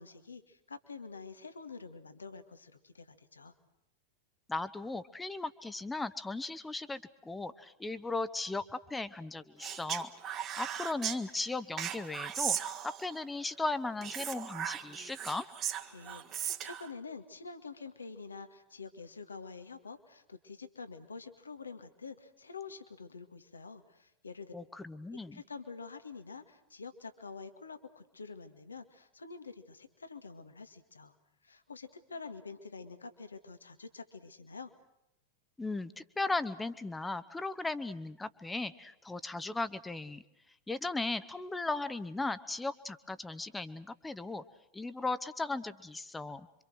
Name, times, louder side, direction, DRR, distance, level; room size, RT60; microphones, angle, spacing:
voice 1, 0.0-3.5 15.9-24.5 25.1-31.2 31.4-34.7, left 4 dB, 75° left, 8 dB, 1.9 m, -47 dB
voice 2, 4.5-10.1 10.6-12.6 12.8-15.4 24.5-25.4 35.6-40.2 40.7-44.4 44.7-46.5, left 3 dB, 10° left, 13 dB, 1.2 m, -37 dB
Speech, 9.6-11.2 11.8-13.2 14.0-16.9, right 9 dB, 30° right, 1.8 m, -37 dB
27.5 x 25.0 x 6.4 m, 0.85 s
figure-of-eight pair, 90°, 0 cm